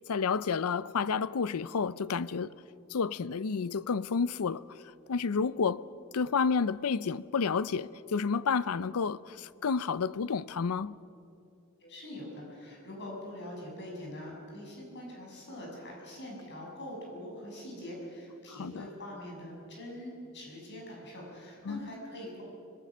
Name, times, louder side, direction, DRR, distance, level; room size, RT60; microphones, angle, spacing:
voice 1, 0.1-2.5 2.9-4.6 5.1-5.8 6.1-10.9 18.6-18.9 21.7-21.8, left 5 dB, 80° left, 0.5 m, -30 dB
voice 2, 11.8-22.4, left 1 dB, 50° left, 7.2 m, -43 dB
25.0 x 21.5 x 6.3 m
head